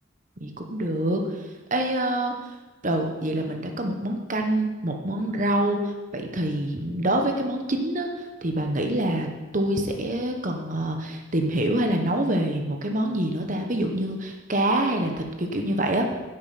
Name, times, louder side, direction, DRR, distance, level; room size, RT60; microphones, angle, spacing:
voice 1, 0.4-1.2 1.7-2.5 2.8-9.3 9.5-16.1, right 1 dB, 40° right, 3 dB, 1.2 m, -26 dB
10.5 x 7.9 x 5.9 m, 1.2 s
head